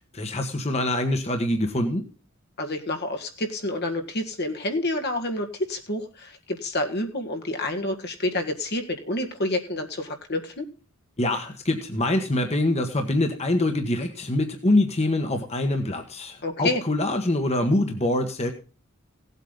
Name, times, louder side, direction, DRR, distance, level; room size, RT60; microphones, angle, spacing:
voice 1, 0.0-2.0 11.2-18.5, left 1 dB, 30° left, 5 dB, 1.4 m, -24 dB
voice 2, 2.6-10.7 16.4-16.8, left 1 dB, 50° left, 4 dB, 1.7 m, -28 dB
17.5 x 8.3 x 3.9 m, 0.35 s
head